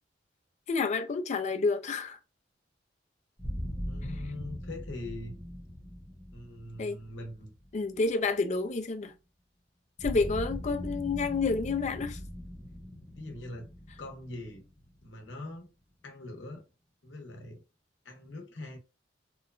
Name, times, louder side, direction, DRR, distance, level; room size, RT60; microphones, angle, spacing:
voice 1, 0.7-2.2 6.8-7.0 7.7-9.1 10.0-12.2, left 4 dB, 40° left, 0.4 m, -29 dB
sound 1, 3.4-8.3 10.0-15.6, equal, 5° left, 0.6 m, -40 dB
voice 2, 3.9-5.4 6.3-7.5 13.2-13.7 14.0-14.6 15.0-15.7 16.0-16.6 17.0-17.6 18.0-18.8, left 2 dB, 75° left, 0.8 m, -42 dB
2.9 x 2.1 x 2.4 m
head